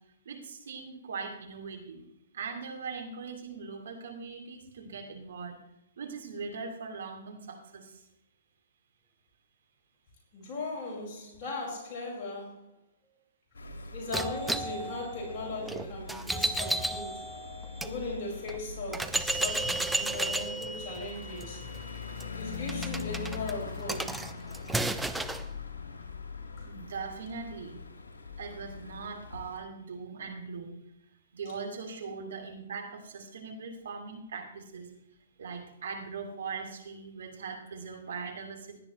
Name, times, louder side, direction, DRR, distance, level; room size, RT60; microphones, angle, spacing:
voice 1, 0.2-2.0 2.3-5.6 6.0-8.1 26.6-27.8 28.4-30.8 31.3-34.9 35.4-38.8, right 5 dB, 65° right, 4 dB, 2.7 m, -40 dB
voice 2, 10.3-12.7 13.9-17.3 17.8-21.6 22.4-24.2, left 2 dB, 40° left, -3 dB, 5.2 m, -38 dB
sound 1, 13.5-29.6, left 5 dB, 75° left, 2.0 m, -42 dB
sound 2, 14.1-17.9 18.5-18.6 18.9-25.5, right 1 dB, 5° right, 0.6 m, -33 dB
17.5 x 10.5 x 3.1 m, 0.80 s
figure-of-eight pair, 120°, 0 cm